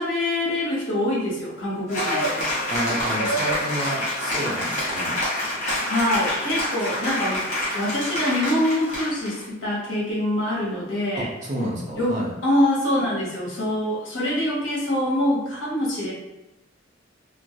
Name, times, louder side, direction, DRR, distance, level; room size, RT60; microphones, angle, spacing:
voice 1, 0.0-2.5 5.8-7.4 7.7-11.3 11.9-16.1, left 1 dB, 85° left, -5 dB, 0.9 m, -25 dB
Cheering / Applause, 1.9-9.4, left 1 dB, 40° left, 0.9 m, -27 dB
voice 2, 2.4-5.1 11.2-12.3, equal, 40° right, -3 dB, 0.6 m, -30 dB
2.2 x 2.0 x 2.7 m, 0.94 s
head